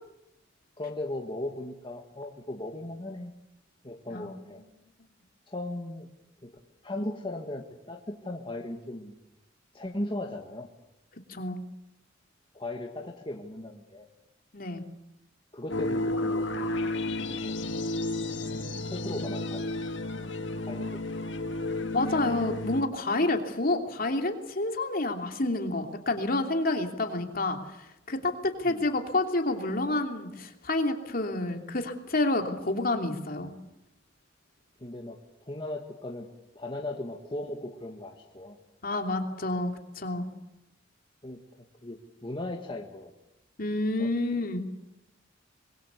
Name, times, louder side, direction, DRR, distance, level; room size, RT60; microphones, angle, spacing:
voice 1, 0.8-3.3 3.8-4.6 5.5-6.1 6.4-9.1 9.7-10.7 12.5-14.1 15.5-16.7 17.4-17.6 18.9-19.8 20.6-21.0 28.6-28.8 34.8-35.2 35.5-36.3 36.6-38.6 41.2-41.4 41.8-43.1 44.0-44.1, left 1 dB, 25° left, 2 dB, 1.8 m, -37 dB
voice 2, 11.3-11.6 14.5-14.8 21.9-33.5 38.8-40.3 43.6-44.6, left 2 dB, 50° left, 4 dB, 3.0 m, -29 dB
sound 1, 15.7-22.8, left 2 dB, 70° left, 1.9 m, -32 dB
25.0 x 22.0 x 8.4 m, 0.88 s
head